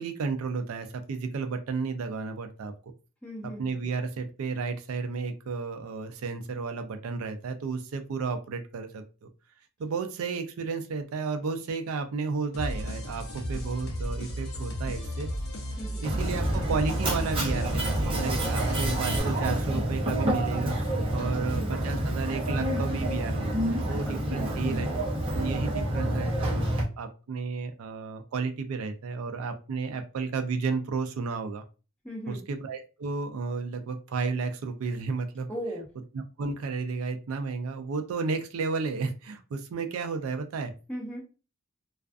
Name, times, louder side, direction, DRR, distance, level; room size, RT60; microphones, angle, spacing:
voice 1, 0.0-2.7 3.6-9.3 9.8-15.3 16.0-24.9 25.3-31.6 32.3-35.5 36.4-40.7, right 4 dB, 80° right, 7 dB, 0.4 m, -32 dB
voice 2, 3.2-3.7 15.8-16.1 21.4-21.8 23.9-24.5 32.0-32.4 35.5-35.9 40.9-41.2, equal, 5° left, -3 dB, 0.8 m, -38 dB
sound 1, 12.5-19.2, equal, 70° left, 0.7 m, -34 dB
Mechanisms, 16.0-26.8, right 1 dB, 25° right, 0.6 m, -28 dB
2.4 x 2.3 x 2.3 m, 0.33 s
head